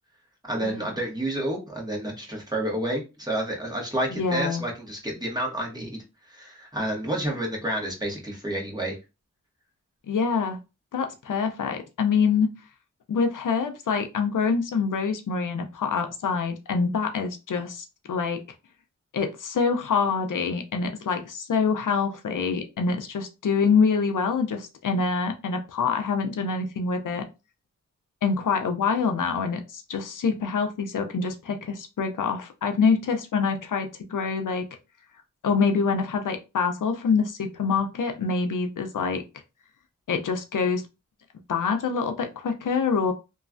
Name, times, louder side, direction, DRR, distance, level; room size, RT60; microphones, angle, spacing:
voice 1, 0.4-6.0 6.3-9.0, right 1 dB, 10° right, -2 dB, 1.2 m, -29 dB
voice 2, 4.1-4.6 10.1-10.6 10.9-12.5 13.1-18.4 19.1-27.3 28.2-34.7 35.4-39.2 40.1-40.8 41.5-43.1, left 5 dB, 75° left, 6 dB, 0.5 m, -25 dB
3.1 x 2.2 x 2.4 m, 0.28 s
cardioid pair, 50°, 32 cm